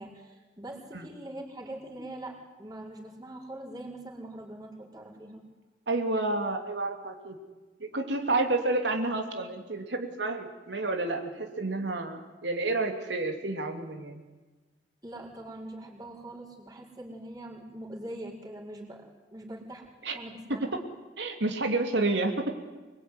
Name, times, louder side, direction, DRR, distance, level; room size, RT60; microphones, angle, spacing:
voice 1, 0.0-5.4 15.0-19.9 20.1-20.8, right 1 dB, 25° right, -2 dB, 5.2 m, -43 dB
voice 2, 5.9-7.4 7.8-14.2 20.0-20.2 20.5-20.8 21.2-22.6, right 2 dB, 90° right, 4 dB, 3.0 m, -30 dB
25.5 x 22.0 x 9.6 m, 1.3 s
head